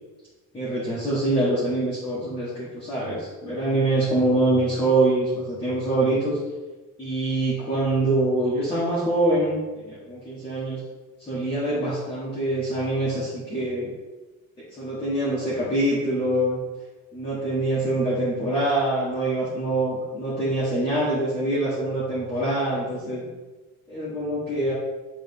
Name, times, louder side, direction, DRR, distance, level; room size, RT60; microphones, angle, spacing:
voice 1, 0.5-6.4 7.0-10.8 11.2-13.9 14.8-16.6 17.1-23.2 23.9-24.7, right 1 dB, 20° left, -8 dB, 1.5 m, -24 dB
7.5 x 3.6 x 5.4 m, 1.2 s
cardioid pair, 180°, 30 cm